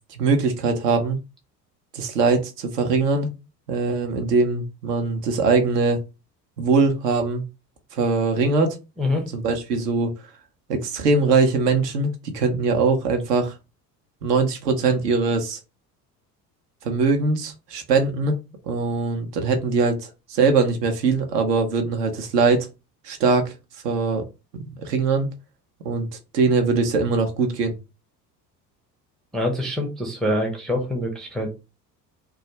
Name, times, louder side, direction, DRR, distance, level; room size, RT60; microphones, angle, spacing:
voice 1, 0.1-1.2 1.9-3.3 3.7-6.0 6.6-7.4 7.9-8.8 9.3-10.1 10.7-13.5 14.2-15.6 16.8-18.4 18.7-22.7 23.0-23.5 23.8-24.2 24.5-25.3 25.8-26.1 26.3-27.7, right 4 dB, 70° right, 0.7 m, -21 dB
voice 2, 29.3-31.5, left 1 dB, ahead, 0.4 m, -25 dB
2.3 x 2.3 x 2.8 m
figure-of-eight pair, 60°, 50 cm